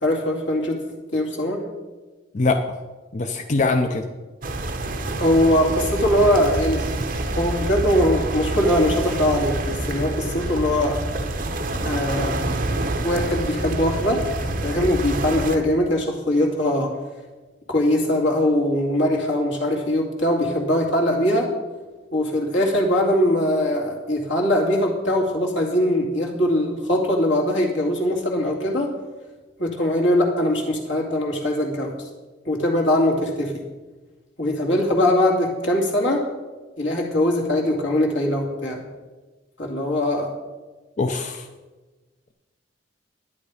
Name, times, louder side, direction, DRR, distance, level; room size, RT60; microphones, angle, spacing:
voice 1, 0.0-0.8 1.1-1.7 5.2-6.9 7.3-11.0 11.8-12.4 13.0-14.2 14.6-16.9 17.7-21.5 22.1-28.9 29.6-31.9 32.4-33.6 34.4-36.2 36.8-38.8 39.6-40.3, left 1 dB, 85° left, 0 dB, 2.4 m, -21 dB
voice 2, 3.1-4.0 41.0-41.5, left 3 dB, 40° left, 6 dB, 0.6 m, -22 dB
sound 1, 4.4-15.6, right 2 dB, 50° right, 1.0 m, -27 dB
11.0 x 9.8 x 5.0 m, 1.2 s
head